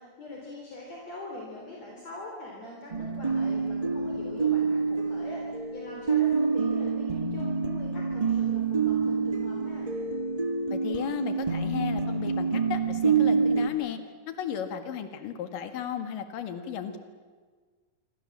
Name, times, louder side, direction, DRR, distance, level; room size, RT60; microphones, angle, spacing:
voice 1, 0.0-9.9, left 2 dB, 50° left, -2 dB, 5.0 m, -43 dB
sound 1, 2.9-13.7, right 5 dB, 70° right, 0.3 m, -27 dB
voice 2, 10.7-14.0 14.3-17.0, left 9 dB, 75° left, 8 dB, 3.5 m, -35 dB
27.5 x 24.5 x 7.5 m, 1.5 s
omnidirectional pair, 3.9 m